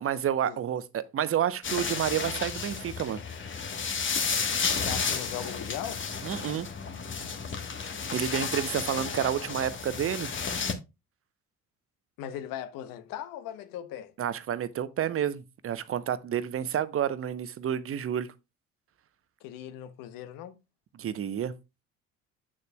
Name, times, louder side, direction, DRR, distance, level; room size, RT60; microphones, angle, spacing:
voice 1, 0.0-3.2 6.2-6.7 8.1-10.3 14.2-18.3 21.0-21.5, right 9 dB, 35° right, 0.8 m, -30 dB
sound 1, 1.6-10.7, left 5 dB, 30° left, 1.3 m, -32 dB
voice 2, 4.8-6.0 12.2-14.1 19.4-20.6, left 11 dB, 60° left, 1.0 m, -38 dB
8.5 x 6.6 x 2.3 m
hypercardioid pair, 55°, 38 cm